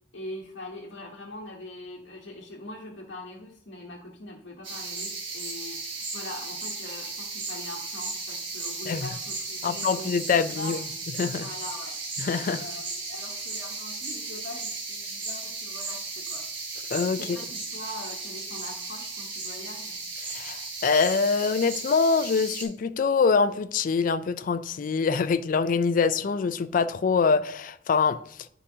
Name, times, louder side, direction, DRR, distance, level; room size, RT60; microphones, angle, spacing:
voice 1, 0.1-10.2 10.5-10.9 11.4-12.0 12.6-16.5 17.1-20.0, left 2 dB, 65° left, 1.0 m, -42 dB
sound 1, 4.6-22.6, right 3 dB, 75° right, 1.7 m, -35 dB
voice 2, 9.6-10.8 11.2-11.5 12.2-12.6 16.9-17.4 20.2-28.2, left 5 dB, 45° left, 0.3 m, -24 dB
9.8 x 4.9 x 2.8 m
head